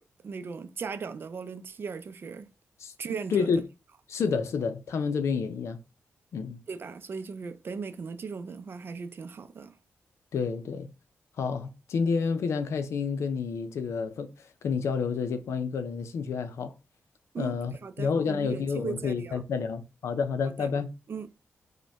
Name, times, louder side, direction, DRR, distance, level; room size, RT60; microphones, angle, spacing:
voice 1, 0.2-2.5 3.0-3.5 6.7-9.7 17.3-17.5 17.8-19.4 20.4-20.7 21.1-21.4, right 5 dB, 50° right, 0.5 m, -37 dB
voice 2, 3.3-3.6 4.1-5.8 6.3-6.6 10.3-10.9 11.4-14.3 14.6-16.7 17.4-20.9, left 5 dB, 80° left, 0.6 m, -29 dB
5.1 x 2.2 x 3.4 m
wide cardioid pair, 115°, 5 cm